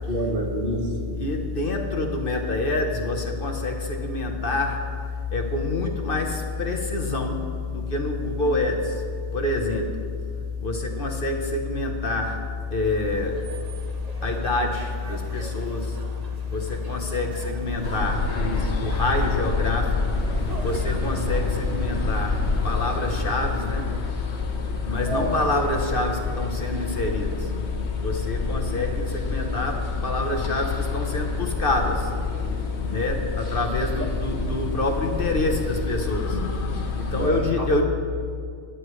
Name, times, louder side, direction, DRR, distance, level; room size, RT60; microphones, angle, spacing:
voice 1, 0.1-1.1 25.1-25.4 34.0-34.1 37.2-37.8, right 1 dB, 50° right, -2 dB, 2.2 m, -28 dB
voice 2, 1.2-4.9 5.3-9.0 9.3-9.9 10.6-12.4 12.7-13.4 14.2-16.0 16.5-20.0 20.6-23.9 24.8-27.5 28.0-32.1 32.9-36.4 36.9-37.8, left 3 dB, 50° left, 3 dB, 1.2 m, -26 dB
sound 1, 12.8-23.9, right 2 dB, 35° right, 1.2 m, -41 dB
sound 2, 17.8-37.3, left 3 dB, 70° left, 1.3 m, -29 dB
21.5 x 11.0 x 3.2 m, 2.2 s
omnidirectional pair, 1.2 m